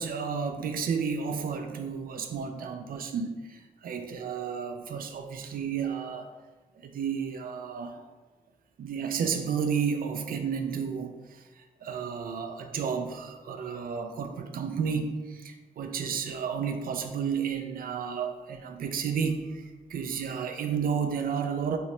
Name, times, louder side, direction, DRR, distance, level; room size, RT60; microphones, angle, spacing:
voice 1, 0.0-6.3 6.8-8.0 8.8-11.4 11.8-19.6 19.9-21.8, right 6 dB, 75° right, 6 dB, 0.4 m, -32 dB
3.8 x 2.1 x 4.3 m, 1.2 s
wide cardioid pair, 130°, 15 cm